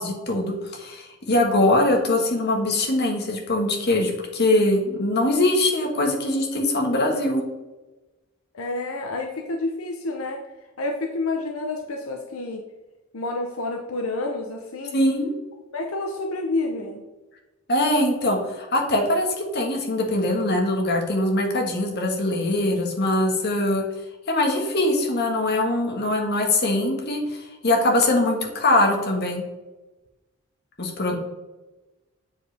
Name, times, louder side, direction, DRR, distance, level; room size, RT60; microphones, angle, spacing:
voice 1, 0.0-7.4 14.9-15.3 17.7-23.8 24.3-29.4 30.8-31.2, left 1 dB, 50° left, 1 dB, 1.4 m, -22 dB
voice 2, 8.5-10.4 10.8-12.6 13.1-15.0 15.7-17.0 31.1-31.2, left 2 dB, 85° left, 2 dB, 0.8 m, -29 dB
7.6 x 4.9 x 3.4 m, 1.1 s
head